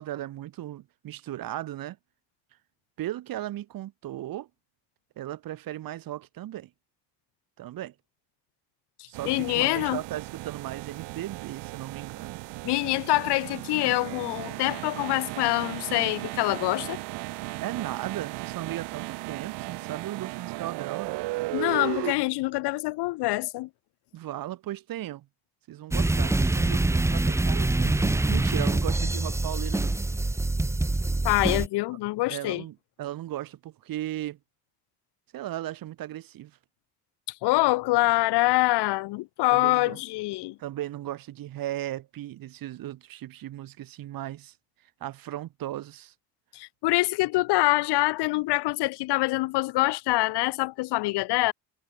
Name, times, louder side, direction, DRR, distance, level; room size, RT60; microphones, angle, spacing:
voice 1, 0.0-2.0 3.0-4.5 5.2-6.7 7.6-7.9 9.1-12.4 17.6-21.2 24.1-25.3 25.7-30.0 32.3-34.4 35.3-36.5 39.5-40.0 40.6-44.5 45.0-46.1, right 13 dB, 60° right, 2.2 m, -36 dB
sound 1, 9.1-22.1, right 21 dB, 90° right, 6.2 m, -36 dB
voice 2, 9.2-10.0 12.6-17.0 21.5-23.7 31.2-32.6 37.4-40.6 46.5-51.5, left 20 dB, 80° left, 2.2 m, -25 dB
sound 2, 25.9-31.7, right 2 dB, 5° right, 0.8 m, -25 dB
cardioid pair, 130°, 39 cm